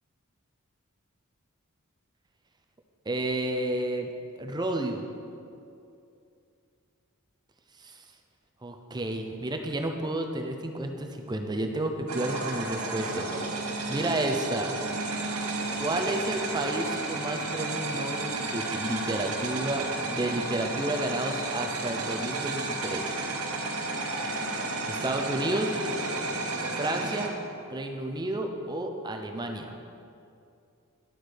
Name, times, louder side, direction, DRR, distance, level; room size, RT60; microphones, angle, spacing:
voice 1, 3.1-4.1 4.4-5.0 7.8-7.9 8.6-13.3 13.9-14.7 15.8-23.1 24.8-25.8 26.7-27.3 27.7-29.7, right 1 dB, 20° right, 4 dB, 0.6 m, -31 dB
sound 1, 12.1-27.3, right 2 dB, 85° right, 1.1 m, -32 dB
11.0 x 7.7 x 3.5 m, 2.5 s
head